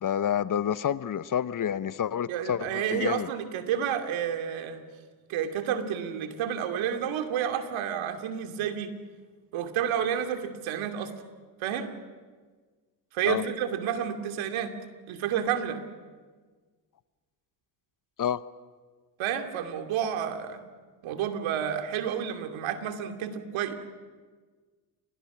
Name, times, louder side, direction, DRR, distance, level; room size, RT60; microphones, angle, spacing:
voice 1, 0.0-3.3 13.2-13.4 18.2-18.4, left 9 dB, 40° left, 15 dB, 1.0 m, -28 dB
voice 2, 2.3-4.8 5.3-8.9 9.5-11.1 11.6-11.9 13.1-14.8 15.1-15.8 19.2-20.6 21.0-23.7, right 9 dB, 75° right, 6 dB, 2.7 m, -30 dB
30.0 x 25.0 x 6.2 m, 1.5 s
supercardioid pair, 70°, 47 cm